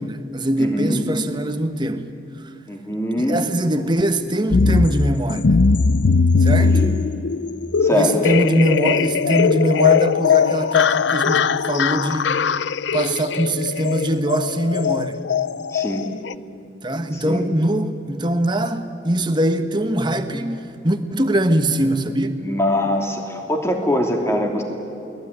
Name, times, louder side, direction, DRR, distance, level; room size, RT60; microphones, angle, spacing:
voice 1, 0.0-2.1 3.2-5.6 6.4-6.8 7.9-12.4 12.9-15.2 16.8-22.4, right 1 dB, 25° right, 1.3 m, -22 dB
voice 2, 0.6-1.0 2.7-3.4 6.6-6.9 7.8-8.2 15.7-16.0 17.1-17.4 22.4-24.6, left 1 dB, 15° left, 3.0 m, -22 dB
sound 1, 4.5-16.3, left 5 dB, 75° left, 0.5 m, -20 dB
29.0 x 20.0 x 9.7 m
head